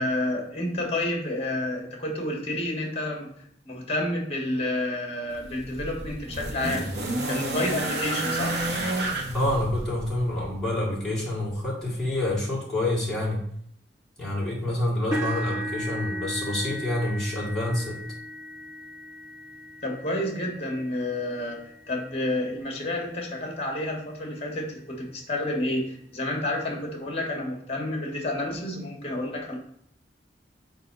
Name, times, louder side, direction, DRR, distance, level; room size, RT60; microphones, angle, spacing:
voice 1, 0.0-3.3 3.6-6.9 7.3-8.6 19.8-29.6, left 1 dB, 35° left, 1 dB, 1.4 m, -30 dB
sound 1, 5.3-10.5 11.6-11.7, right 1 dB, 70° right, 1.1 m, -30 dB
voice 2, 9.3-13.4 14.2-18.0, left 1 dB, 5° left, -6 dB, 1.9 m, -27 dB
sound 2, 15.1-23.1 23.8-24.0 24.4-24.5 25.9-26.0, equal, 25° right, 2.6 m, -37 dB
4.4 x 4.0 x 5.3 m, 0.69 s
head